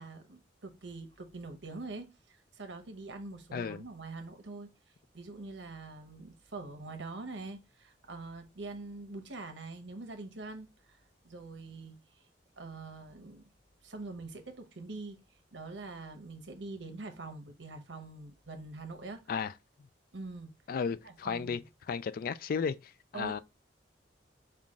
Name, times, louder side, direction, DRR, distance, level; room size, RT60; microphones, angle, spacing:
voice 1, 0.0-4.7 5.1-11.0 11.2-12.0 12.6-13.4 13.8-15.2 15.5-19.2 20.1-20.5 21.0-21.6 23.1-23.4, right 3 dB, 85° right, 1.0 m, -44 dB
voice 2, 3.5-3.8 19.3-19.5 20.7-21.6 21.9-23.4, left 6 dB, 55° left, 0.3 m, -34 dB
5.6 x 2.4 x 3.6 m
head